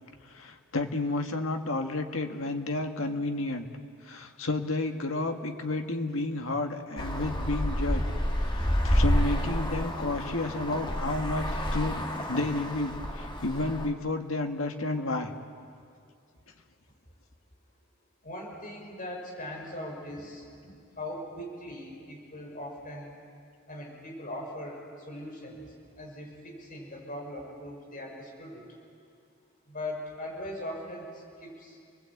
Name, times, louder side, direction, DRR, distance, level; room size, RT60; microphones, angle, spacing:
voice 1, 0.3-3.7 4.1-8.0 8.5-12.0 12.3-15.3, left 2 dB, 75° left, 4 dB, 1.8 m, -31 dB
Traffic noise roadway noise, 7.0-13.9, equal, 25° left, 1.7 m, -29 dB
voice 2, 18.2-23.2 23.7-24.8 25.1-25.6 26.0-28.6 29.7-31.1 31.4-31.8, left 1 dB, 40° left, -1 dB, 5.8 m, -40 dB
30.0 x 20.0 x 8.6 m, 2.4 s
head